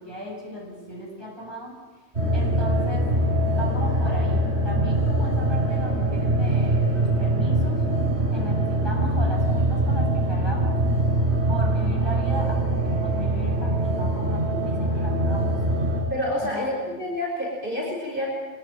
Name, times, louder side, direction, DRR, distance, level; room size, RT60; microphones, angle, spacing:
voice 1, 0.0-1.8 2.3-3.1 3.5-7.8 8.3-10.8 11.5-15.6 16.5-16.7, equal, 20° right, -2 dB, 8.2 m, -36 dB
sound 1, 2.1-16.0, right 1 dB, 65° right, 7.3 m, -23 dB
voice 2, 16.1-18.3, left 1 dB, 45° right, -2 dB, 5.7 m, -28 dB
24.5 x 21.0 x 9.3 m, 1.3 s
omnidirectional pair, 1.2 m